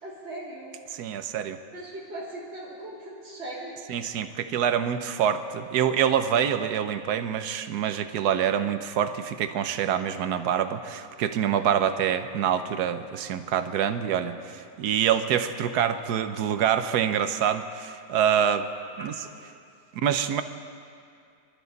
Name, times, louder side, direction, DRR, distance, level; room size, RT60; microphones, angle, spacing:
voice 1, 0.0-0.7 1.7-3.8, right 1 dB, 45° right, -9 dB, 3.6 m, -39 dB
voice 2, 0.9-1.6 3.9-18.7 19.0-19.1 20.0-20.4, right 9 dB, 90° right, 10 dB, 1.3 m, -26 dB
25.5 x 12.0 x 4.1 m, 2.3 s
omnidirectional pair, 1.7 m